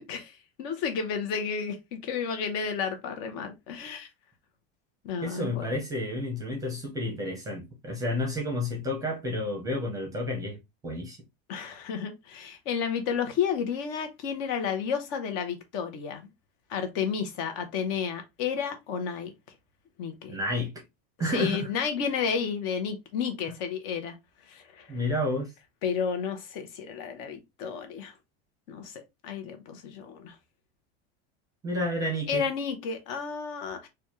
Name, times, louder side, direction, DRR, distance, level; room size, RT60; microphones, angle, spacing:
voice 1, 0.0-4.1 5.0-5.7 11.5-16.3 16.7-19.3 20.0-20.3 21.3-24.2 24.5-25.0 25.8-28.1 28.7-30.3 32.3-33.9, left 6 dB, 50° left, 0.9 m, -32 dB
voice 2, 5.2-10.6 10.8-11.2 20.3-20.7 21.2-21.7 24.9-25.5 31.6-32.4, left 1 dB, 10° right, 0.7 m, -30 dB
4.1 x 2.3 x 3.0 m
cardioid pair, 180°, 33 cm